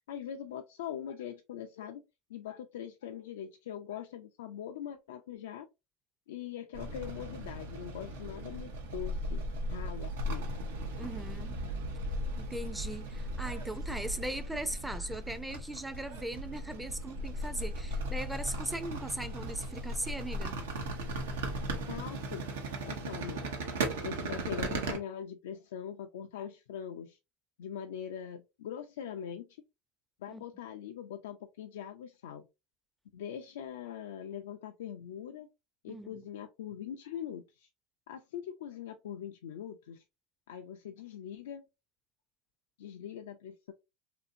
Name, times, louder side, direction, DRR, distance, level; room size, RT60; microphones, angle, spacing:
voice 1, 0.1-2.0 2.3-5.7 6.3-10.5 21.9-22.5 22.9-23.5 23.9-27.2 27.6-29.5 30.2-32.5 33.1-35.5 35.8-37.7 38.1-40.0 40.5-41.6 42.8-43.7, left 9 dB, 90° left, 0.3 m, -42 dB
sound 1, 6.7-25.0, right 1 dB, 90° right, 0.7 m, -37 dB
voice 2, 11.0-11.6 12.4-20.6 30.3-30.4 35.9-36.2, right 1 dB, 5° right, 0.4 m, -39 dB
2.7 x 2.6 x 2.5 m
supercardioid pair, 100°, 0 cm